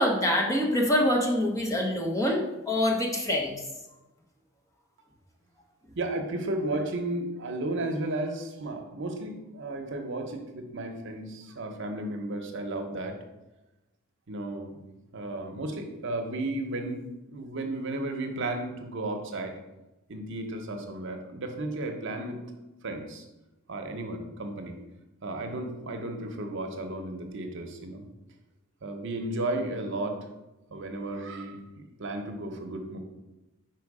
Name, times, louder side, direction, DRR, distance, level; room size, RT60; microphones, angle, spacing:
voice 1, 0.0-3.6, left 1 dB, 15° left, 0 dB, 1.0 m, -25 dB
voice 2, 6.0-13.1 14.3-14.7 15.1-17.0 17.3-19.5 20.1-22.4 22.8-23.2 23.7-24.7 25.2-28.1 28.8-30.2 30.7-31.6 32.0-33.0, right 2 dB, 60° right, 4 dB, 0.8 m, -33 dB
5.3 x 4.5 x 4.8 m, 1.0 s
head